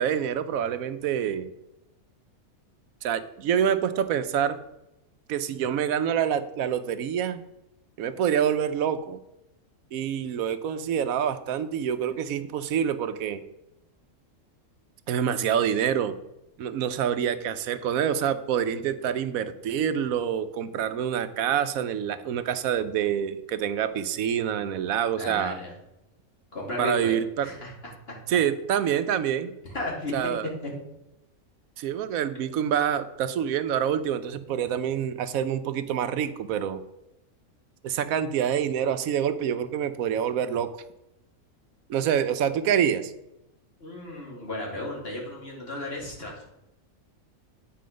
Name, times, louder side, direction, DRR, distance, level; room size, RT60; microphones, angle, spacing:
voice 1, 0.0-1.5 3.0-4.6 5.3-7.4 8.0-9.2 9.9-13.4 15.1-16.1 16.6-25.6 26.8-27.5 28.3-29.5 30.1-30.5 31.8-36.8 37.8-40.7 41.9-43.1, right 9 dB, 85° right, 12 dB, 1.1 m, -26 dB
voice 2, 25.2-25.7 26.5-27.1 27.4-28.1 29.7-30.2 30.6-30.7 43.8-46.4, left 2 dB, 45° left, -2 dB, 2.5 m, -34 dB
9.4 x 4.6 x 5.1 m, 0.89 s
omnidirectional pair, 1.4 m